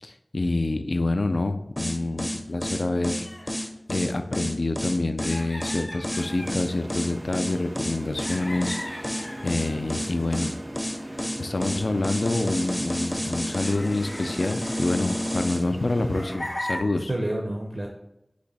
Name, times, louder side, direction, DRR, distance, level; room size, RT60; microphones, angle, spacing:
voice 1, 0.0-3.3 3.9-10.5 11.1-17.1, left 2 dB, 80° left, 8 dB, 0.3 m, -27 dB
sound 1, 1.8-15.6, equal, 20° left, 0.5 m, -31 dB
sound 2, 3.2-3.5 5.2-6.6 8.2-10.5 11.6-11.9 12.6-12.7 13.6-15.7 16.1-16.8, left 1 dB, 55° left, 1.4 m, -38 dB
sound 3, 6.1-16.4, equal, 90° right, 0.7 m, -39 dB
voice 2, 9.8-10.3 16.9-17.9, right 1 dB, 60° right, 2 dB, 0.5 m, -31 dB
5.0 x 2.6 x 4.0 m, 0.88 s
wide cardioid pair, 50°, 0 cm